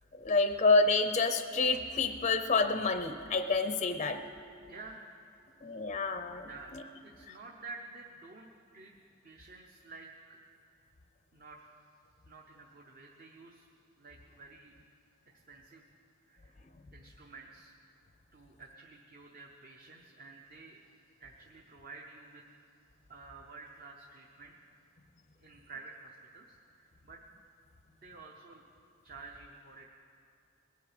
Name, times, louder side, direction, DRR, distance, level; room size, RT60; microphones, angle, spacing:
voice 1, 0.1-4.2 5.6-6.8 7.3-7.4, left 3 dB, 30° left, 8 dB, 0.5 m, -28 dB
voice 2, 4.7-5.2 6.4-6.7 7.0-8.5 8.7-8.9 9.2-10.4 11.3-11.6 12.3-13.7 14.0-14.8 15.5-15.8 16.2-16.6 16.9-17.8 18.3-20.8 21.2-22.5 23.1-24.6 25.3-27.2 27.9-28.6 29.0-29.9, right 3 dB, 40° right, 1 dB, 0.8 m, -50 dB
21.0 x 9.4 x 5.0 m, 2.5 s
head